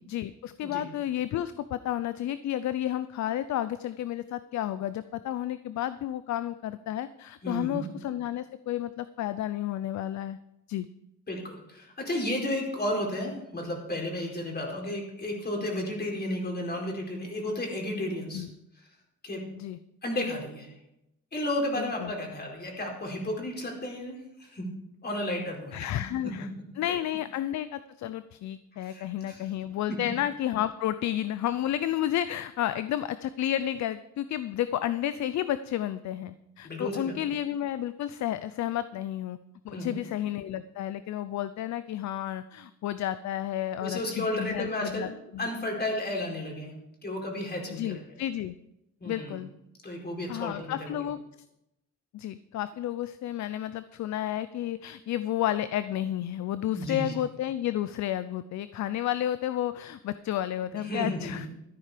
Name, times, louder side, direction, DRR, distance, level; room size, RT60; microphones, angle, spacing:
voice 1, 0.0-10.4 10.7-10.9 18.3-18.5 19.6-19.8 21.8-22.1 25.7-26.5 26.8-39.4 39.6-45.5 47.7-48.6 49.0-49.5 50.3-51.2 52.1-61.5, left 12 dB, 65° left, 14 dB, 0.6 m, -31 dB
voice 2, 7.4-7.9 11.3-18.5 19.2-19.4 20.0-20.7 21.3-24.6 25.0-25.8 26.2-26.3 28.8-29.5 36.6-37.2 39.7-40.0 43.8-45.1 45.4-46.7 47.0-48.0 49.0-49.4 49.8-51.0 56.7-57.2 60.8-61.5, left 1 dB, 35° left, 0 dB, 4.7 m, -33 dB
13.5 x 10.0 x 5.1 m, 0.87 s
cardioid pair, 90°, 30 cm